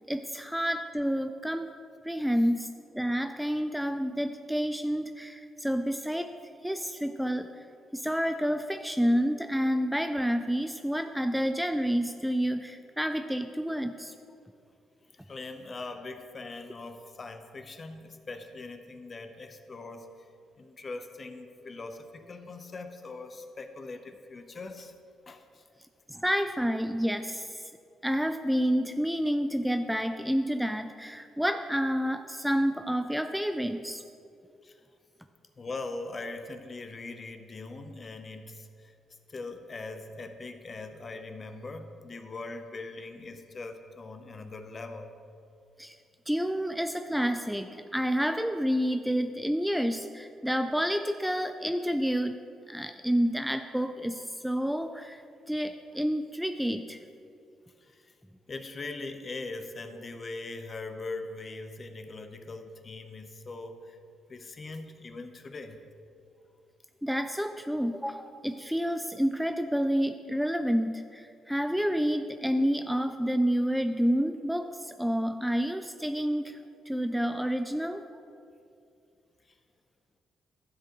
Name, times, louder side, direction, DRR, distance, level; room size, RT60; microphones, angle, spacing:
voice 1, 0.1-1.7 2.0-6.3 6.6-7.5 7.9-14.1 26.1-27.7 28.0-34.0 45.8-46.0 46.3-52.4 52.7-55.2 55.5-57.0 67.0-76.6 76.9-78.0, equal, ahead, 7 dB, 0.3 m, -29 dB
voice 2, 15.1-20.1 20.6-24.9 25.3-25.6 34.6-34.8 35.6-38.9 39.3-45.2 57.8-58.1 58.5-64.0 64.3-65.8 79.5-79.6, left 3 dB, 35° left, 7 dB, 0.7 m, -41 dB
12.5 x 7.7 x 3.0 m, 2.5 s
cardioid pair, 90°, 0 cm